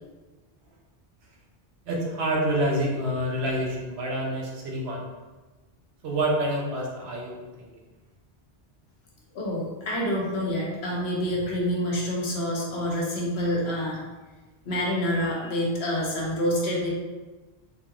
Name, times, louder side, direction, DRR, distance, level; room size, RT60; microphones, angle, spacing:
voice 1, 1.9-5.0 6.0-7.7, right 1 dB, 85° right, -2 dB, 1.0 m, -27 dB
voice 2, 9.3-14.0 14.6-16.9, equal, 90° left, -3 dB, 1.1 m, -27 dB
3.7 x 2.4 x 2.9 m, 1.2 s
omnidirectional pair, 1.0 m